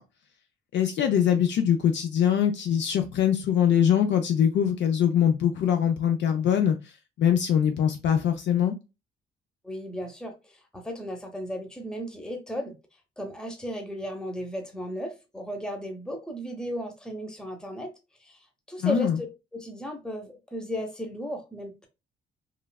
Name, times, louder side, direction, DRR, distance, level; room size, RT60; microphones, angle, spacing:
voice 1, 0.7-6.8 7.2-8.7 18.8-19.2, left 9 dB, 65° left, 0.4 m, -23 dB
voice 2, 9.6-12.8 13.2-17.9 18.2-18.4 18.7-19.1 19.5-21.9, equal, 5° left, 0.7 m, -35 dB
3.1 x 2.3 x 2.2 m
cardioid pair, 90°, 20 cm